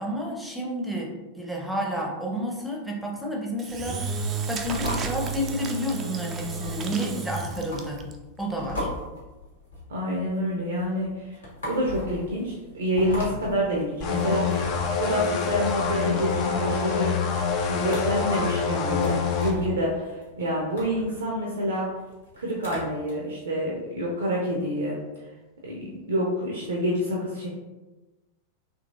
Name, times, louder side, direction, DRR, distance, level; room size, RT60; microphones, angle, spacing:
voice 1, 0.0-8.0 8.4-8.9, equal, ahead, -2 dB, 0.7 m, -31 dB
Engine / Drill, 3.6-8.1, right 5 dB, 25° right, 0.4 m, -32 dB
sound 1, 4.7-23.1, left 1 dB, 75° left, 1.2 m, -39 dB
voice 2, 9.9-11.4 11.6-14.7 15.0-17.1 17.6-21.9 22.4-25.0 25.6-27.5, equal, 65° right, -3 dB, 0.6 m, -27 dB
sound 2, 14.0-19.5, left 6 dB, 40° left, 0.4 m, -26 dB
3.8 x 3.0 x 2.4 m, 1.1 s
figure-of-eight pair, 90°, 0 cm